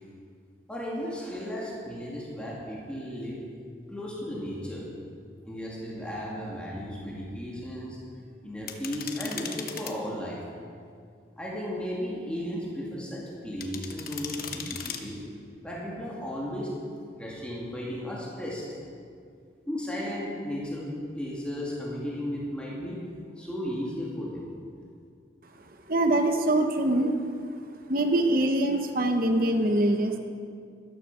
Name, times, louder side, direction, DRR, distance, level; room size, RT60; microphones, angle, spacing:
voice 1, 0.7-3.4 3.9-4.9 5.5-8.0 8.4-10.4 11.4-15.2 15.6-16.8 17.2-18.6 19.7-23.0 23.4-24.5, equal, 5° left, -5 dB, 2.5 m, -35 dB
sound 1, 8.7-10.0 13.6-15.0, left 8 dB, 50° left, 1.0 m, -37 dB
voice 2, 25.9-27.1 27.9-30.2, right 1 dB, 50° right, 5 dB, 0.9 m, -24 dB
13.5 x 12.5 x 5.6 m, 2.3 s
head